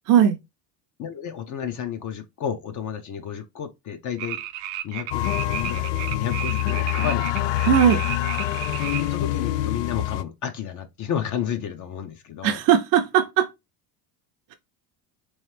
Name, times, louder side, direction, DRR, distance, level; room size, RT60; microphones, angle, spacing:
voice 1, 0.1-0.4 7.7-8.0 12.4-13.5, right 9 dB, 45° right, 0.5 m, -18 dB
voice 2, 1.0-4.4 4.8-7.6 9.0-12.6, left 8 dB, 40° left, 0.6 m, -32 dB
sound 1, 4.2-9.2, right 12 dB, 85° right, 0.7 m, -33 dB
sound 2, 5.1-10.2, left 13 dB, 90° left, 0.6 m, -25 dB
3.5 x 3.1 x 3.2 m
supercardioid pair, 110°, 47 cm